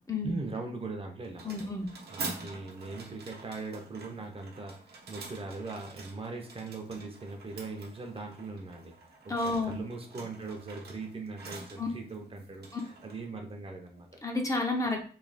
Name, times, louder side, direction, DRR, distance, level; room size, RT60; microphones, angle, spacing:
voice 1, 0.2-1.7 2.1-8.9 9.2-14.1, right 3 dB, 35° right, 3 dB, 0.6 m, -40 dB
sound 1, 1.2-14.3, right 4 dB, 70° right, 0.8 m, -46 dB
voice 2, 1.4-1.9 9.3-9.8 11.8-11.9 14.2-15.0, left 2 dB, 20° left, 2 dB, 0.5 m, -30 dB
3.2 x 2.8 x 4.0 m, 0.42 s
wide cardioid pair, 160°, 17 cm